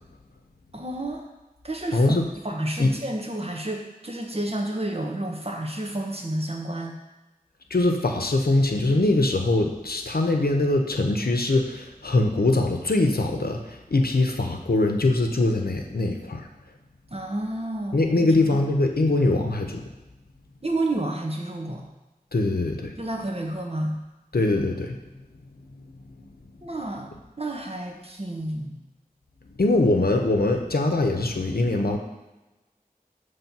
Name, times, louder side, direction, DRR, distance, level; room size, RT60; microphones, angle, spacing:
voice 1, 0.7-1.3 1.6-2.0 2.4-7.0 17.1-18.1 18.5-18.6 20.6-21.9 23.0-24.0 26.6-28.8, right 1 dB, 40° right, 1 dB, 1.1 m, -30 dB
voice 2, 1.9-2.2 2.8-2.9 7.7-16.5 17.9-19.9 22.3-22.9 24.3-25.0 26.0-26.3 29.6-32.0, left 2 dB, 85° left, 3 dB, 0.7 m, -22 dB
7.0 x 3.3 x 5.9 m, 1.1 s
wide cardioid pair, 40°, 16 cm